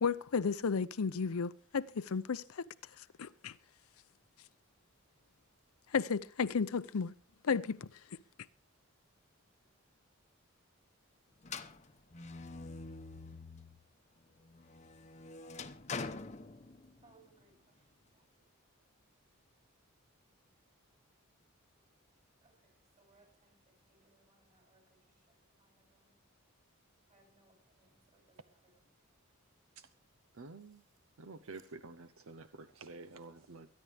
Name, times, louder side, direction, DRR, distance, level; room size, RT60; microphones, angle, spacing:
voice 1, 0.0-2.6 3.2-3.5 5.9-7.1 7.4-7.9, left 5 dB, 80° left, 0.6 m, -33 dB
sound 1, 11.4-13.9 14.3-17.1, left 4 dB, 30° left, 0.9 m, -45 dB
voice 2, 17.0-18.5 20.5-20.7 22.4-26.2 27.1-29.1 30.1-30.2 30.7-30.8 31.5-31.6, right 3 dB, 35° right, 6.4 m, -70 dB
voice 3, 30.4-30.8 31.2-33.7, right 3 dB, 70° right, 0.7 m, -49 dB
23.5 x 10.5 x 3.4 m
head